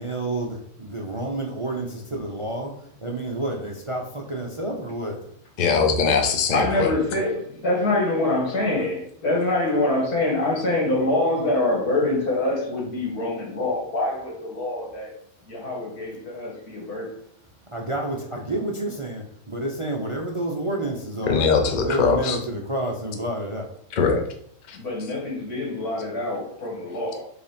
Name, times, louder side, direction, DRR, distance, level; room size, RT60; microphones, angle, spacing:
voice 1, 0.0-5.3 17.7-21.5 21.8-23.7, right 1 dB, 30° right, 0 dB, 0.6 m, -29 dB
voice 2, 5.6-6.9 21.2-22.4 23.9-24.2 24.7-24.8, left 5 dB, 35° left, 3 dB, 0.8 m, -21 dB
voice 3, 6.5-15.1 15.5-17.1 24.7-27.2, left 2 dB, 80° left, -2 dB, 2.5 m, -25 dB
5.3 x 3.7 x 5.2 m, 0.68 s
omnidirectional pair, 1.6 m